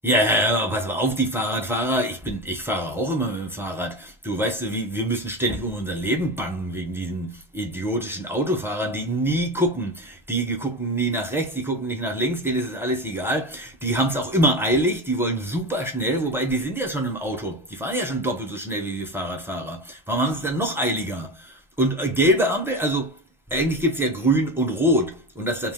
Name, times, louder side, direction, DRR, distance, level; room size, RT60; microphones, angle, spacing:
voice 1, 0.0-23.2 23.5-25.7, right 1 dB, 5° right, 0.7 m, -25 dB
2.5 x 2.3 x 3.6 m
omnidirectional pair, 1.2 m